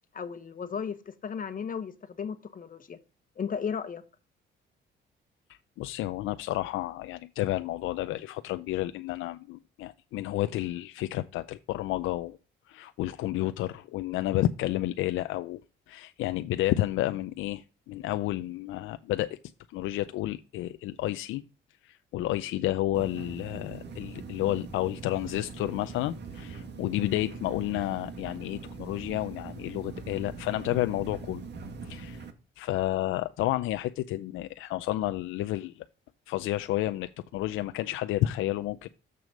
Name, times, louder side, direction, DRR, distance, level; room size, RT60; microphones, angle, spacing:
voice 1, 0.1-3.0 3.4-4.0, left 6 dB, 45° left, 1.3 m, -35 dB
voice 2, 5.8-12.4 12.7-15.6 15.9-19.4 19.7-21.4 21.8-31.4 31.9-32.2 32.6-35.8 36.3-38.9, left 15 dB, 85° left, 0.5 m, -31 dB
sound 1, 22.9-32.3, right 4 dB, 60° right, 1.6 m, -42 dB
6.9 x 6.3 x 5.0 m
cardioid pair, 90°, 20 cm